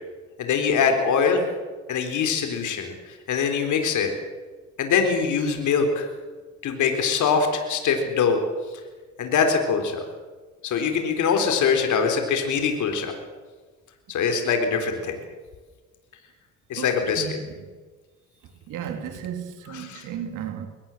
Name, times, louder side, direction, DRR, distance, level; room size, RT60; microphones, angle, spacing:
voice 1, 0.4-1.4 1.9-4.1 4.8-6.1 6.6-8.4 9.2-10.0 10.6-13.1 14.1-15.2 16.7-17.2 19.7-20.0, left 6 dB, 75° left, 4.0 m, -23 dB
voice 2, 16.7-17.7 18.7-20.7, right 8 dB, 90° right, 2.8 m, -34 dB
23.0 x 19.0 x 7.4 m
cardioid pair, 90°, 30 cm